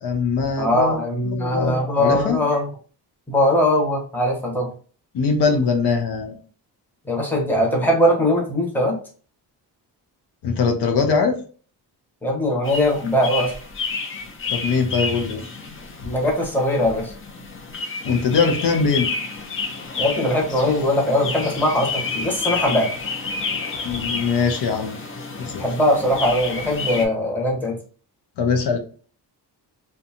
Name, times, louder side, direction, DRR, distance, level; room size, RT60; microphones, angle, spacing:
voice 1, 0.0-0.9 1.3-2.4 5.1-6.4 10.4-11.4 14.5-15.5 18.0-19.1 23.8-25.0 25.4-25.6 28.4-28.8, left 5 dB, 75° left, 4 dB, 0.6 m, -21 dB
voice 2, 0.6-2.7 3.3-4.7 7.1-8.9 12.2-13.5 16.0-17.1 20.0-22.9 25.6-27.7, left 1 dB, 5° left, -1 dB, 0.8 m, -20 dB
sound 1, 12.6-27.1, left 4 dB, 30° left, 0.5 m, -30 dB
2.6 x 2.3 x 2.7 m, 0.40 s
cardioid pair, 115°, 41 cm